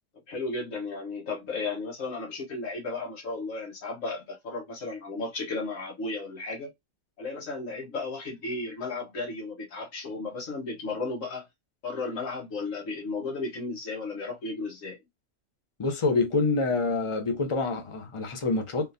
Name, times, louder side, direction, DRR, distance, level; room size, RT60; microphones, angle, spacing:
voice 1, 0.3-6.7 7.2-11.4 11.8-15.0, left 3 dB, 85° left, 1.6 m, -34 dB
voice 2, 15.8-18.9, left 3 dB, 30° left, 0.7 m, -26 dB
3.6 x 2.5 x 2.7 m
omnidirectional pair, 1.3 m